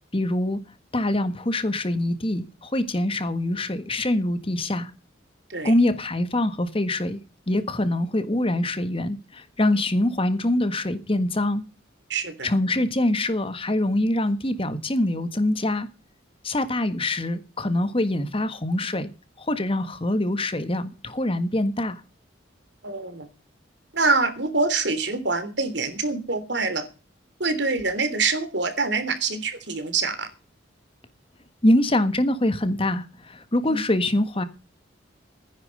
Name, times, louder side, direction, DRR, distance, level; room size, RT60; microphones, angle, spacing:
voice 1, 0.1-0.6 0.9-4.9 5.6-7.2 7.5-11.6 12.4-15.9 16.4-19.1 19.4-22.0 31.6-34.4, left 1 dB, 30° left, 1.5 m, -24 dB
voice 2, 12.1-12.5 22.8-23.3 23.9-26.8 27.4-30.3 33.6-33.8, right 3 dB, 60° right, 3.3 m, -25 dB
14.5 x 10.5 x 5.4 m
head